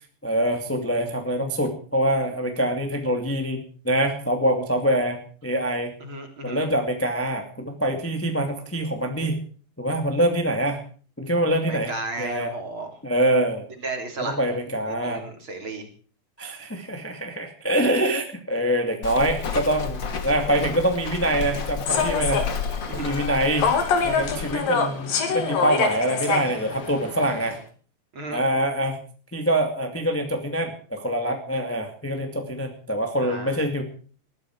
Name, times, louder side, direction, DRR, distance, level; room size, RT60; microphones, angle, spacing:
voice 1, 0.2-5.9 6.4-9.4 9.8-10.8 11.2-11.9 12.2-12.5 13.0-13.7 14.2-15.2 16.4-22.4 22.9-23.7 24.0-27.6 28.3-29.0 29.3-33.8, right 1 dB, 5° left, 4 dB, 1.7 m, -25 dB
voice 2, 6.0-6.6 11.6-12.9 13.8-14.4 14.9-15.9 22.9-23.2 28.1-28.4 33.2-33.6, right 3 dB, 35° right, 4 dB, 4.0 m, -34 dB
Walk footsteps, 19.0-24.5, left 5 dB, 40° left, 2.0 m, -31 dB
Human voice / Subway metro underground, 21.9-27.6, left 5 dB, 80° left, 4.3 m, -26 dB
21.0 x 14.0 x 4.8 m, 0.42 s
omnidirectional pair, 4.0 m